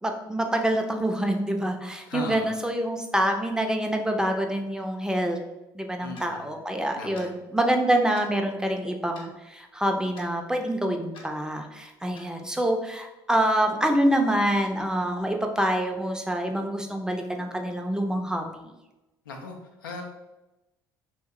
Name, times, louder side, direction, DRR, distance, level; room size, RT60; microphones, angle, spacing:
voice 1, 0.0-5.4 5.7-18.7, right 1 dB, 5° right, 3 dB, 0.5 m, -26 dB
voice 2, 2.1-2.5 6.0-6.5 7.0-7.3 19.3-20.0, left 3 dB, 85° left, 2 dB, 0.4 m, -37 dB
Clock, 6.1-6.3 7.1-7.3 8.1-8.3 9.1-9.3 10.1-10.3 11.1-11.3 12.1-12.3, left 3 dB, 50° left, 0.7 m, -47 dB
2.9 x 2.1 x 3.5 m, 0.99 s
hypercardioid pair, 60°, 11 cm